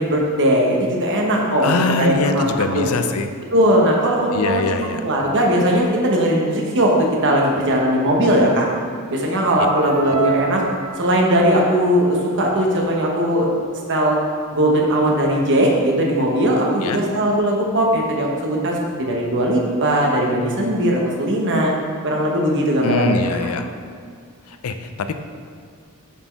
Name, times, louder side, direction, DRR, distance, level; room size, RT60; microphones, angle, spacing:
voice 1, 0.0-2.9 3.5-8.7 9.1-10.6 11.0-13.5 13.9-14.2 14.5-21.7 22.0-23.5, right 1 dB, 55° right, -1 dB, 1.1 m, -19 dB
voice 2, 1.6-3.3 4.3-5.0 16.8-17.0 22.8-23.7 24.5-25.1, left 4 dB, 75° left, 8 dB, 0.5 m, -23 dB
sound 1, 9.8-11.5, right 5 dB, 85° right, 0.7 m, -26 dB
7.1 x 4.3 x 4.6 m, 2.2 s
head